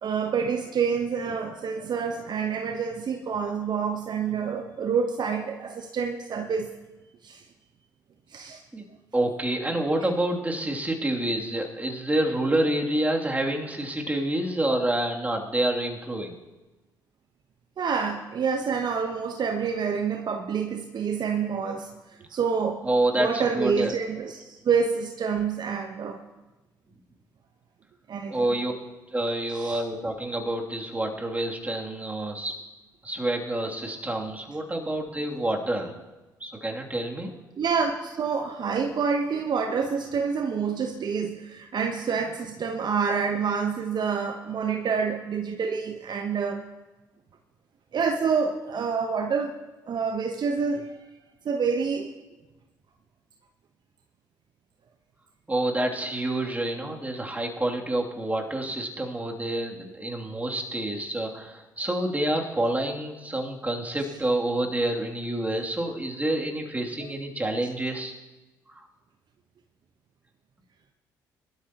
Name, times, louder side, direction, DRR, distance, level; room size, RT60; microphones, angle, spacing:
voice 1, 0.0-6.7 7.2-7.4 8.3-8.6 17.8-22.8 23.2-26.2 28.1-28.5 29.5-29.8 37.6-46.7 47.9-49.5 49.9-50.9 51.4-52.1, right 6 dB, 50° right, 5 dB, 1.1 m, -27 dB
voice 2, 9.1-16.4 22.8-23.9 28.3-28.7 29.1-32.5 33.0-36.0 36.4-37.3 55.5-68.1 68.7-68.8, right 1 dB, 15° right, 0 dB, 2.8 m, -28 dB
22.5 x 12.5 x 3.0 m, 1.1 s
hypercardioid pair, 50°, 10 cm